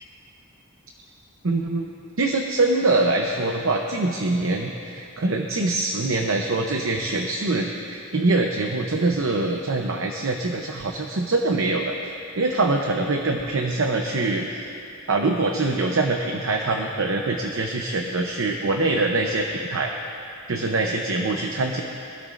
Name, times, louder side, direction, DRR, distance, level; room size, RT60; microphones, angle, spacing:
voice 1, 1.4-1.9 2.2-14.4 15.1-19.9 20.5-21.8, right 2 dB, 70° right, 2 dB, 0.8 m, -24 dB
24.0 x 12.5 x 2.6 m, 2.7 s
head